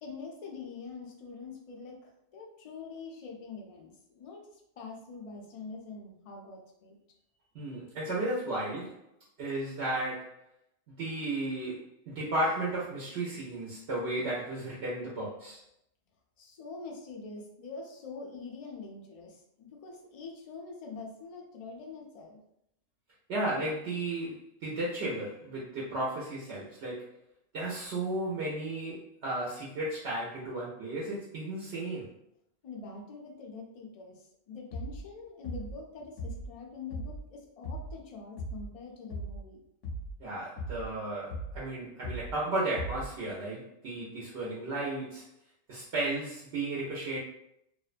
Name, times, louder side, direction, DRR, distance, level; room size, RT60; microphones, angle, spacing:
voice 1, 0.0-4.4 4.8-7.0 16.4-22.4 32.6-39.6, left 4 dB, 65° left, 0 dB, 0.3 m, -45 dB
voice 2, 7.5-9.0 9.4-10.3 11.0-15.6 23.3-27.1 27.5-32.1 40.2-45.3 45.7-47.2, right 2 dB, 70° right, -5 dB, 0.9 m, -34 dB
sound 1, 34.7-35.1 35.4-35.8 36.2-36.5 36.9-37.3 37.6-38.0 38.4-38.7 39.1-39.5 39.8-40.2 40.6-40.9 41.3-41.7 42.0-42.4 42.8-43.2, equal, 80° left, 0.9 m, -38 dB
2.5 x 2.1 x 2.4 m, 0.76 s
omnidirectional pair, 1.2 m